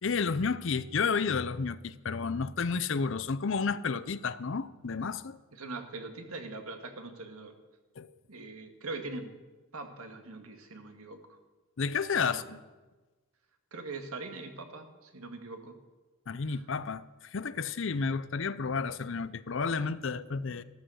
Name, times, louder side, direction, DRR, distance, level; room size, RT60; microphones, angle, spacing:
voice 1, 0.0-5.4 8.0-8.1 11.8-12.6 16.3-17.1 17.3-20.6, left 5 dB, 60° left, 0.6 m, -31 dB
voice 2, 5.5-7.5 8.3-9.3 9.7-11.4 12.2-12.6 13.7-15.7 16.5-16.6, right 3 dB, 90° right, 2.0 m, -42 dB
14.0 x 13.0 x 6.4 m
head